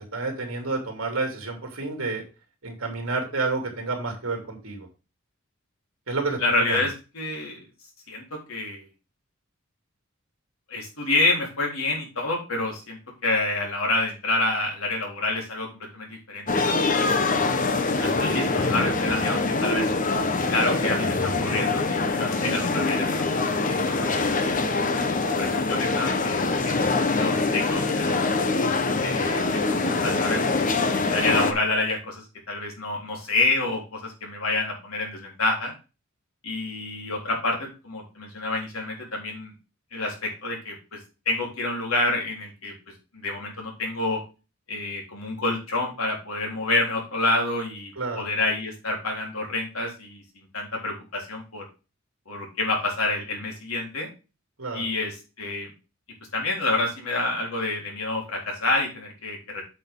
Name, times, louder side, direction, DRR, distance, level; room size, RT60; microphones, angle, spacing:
voice 1, 0.1-2.2 2.6-4.9 6.1-6.8 48.0-48.3 54.6-54.8, right 3 dB, 75° right, 3 dB, 3.1 m, -29 dB
voice 2, 6.4-7.6 8.1-8.9 10.7-15.7 15.9-17.3 18.0-19.9 20.5-24.5 25.1-28.3 29.0-35.7 36.4-39.5 39.9-41.0 41.3-42.7 43.1-44.2 44.7-51.6 52.3-54.1 54.7-55.7 56.3-59.6, left 2 dB, 80° left, -1 dB, 3.8 m, -28 dB
sound 1, 16.5-31.5, left 3 dB, 40° left, 1.0 m, -24 dB
8.3 x 6.5 x 3.7 m, 0.30 s
head